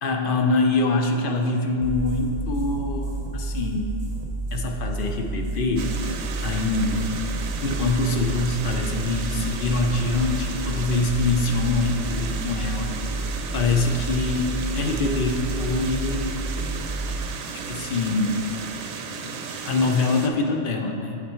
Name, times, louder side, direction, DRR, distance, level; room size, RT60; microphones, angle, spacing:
voice 1, 0.0-3.9 4.5-5.9 6.4-7.0 7.6-12.9 13.5-16.3 17.7-18.5 19.6-21.2, left 3 dB, 60° left, 3 dB, 0.6 m, -24 dB
sound 1, 1.8-18.9, right 2 dB, 40° right, 0.7 m, -31 dB
sound 2, 5.8-20.3, right 5 dB, 75° right, 0.9 m, -35 dB
8.7 x 4.2 x 4.2 m, 2.7 s
omnidirectional pair, 1.3 m